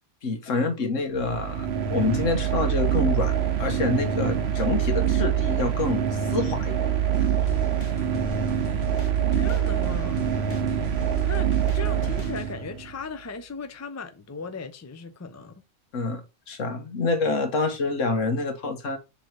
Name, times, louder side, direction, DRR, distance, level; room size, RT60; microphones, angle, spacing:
voice 1, 0.2-7.3 15.9-19.0, left 3 dB, 75° left, 1.5 m, -27 dB
sound 1, 1.1-13.0, right 9 dB, 60° right, 1.0 m, -25 dB
sound 2, 7.1-12.5, equal, 45° left, 1.3 m, -37 dB
voice 2, 9.2-10.2 11.2-15.6, left 4 dB, 20° left, 0.4 m, -37 dB
7.0 x 3.0 x 4.6 m
omnidirectional pair, 1.4 m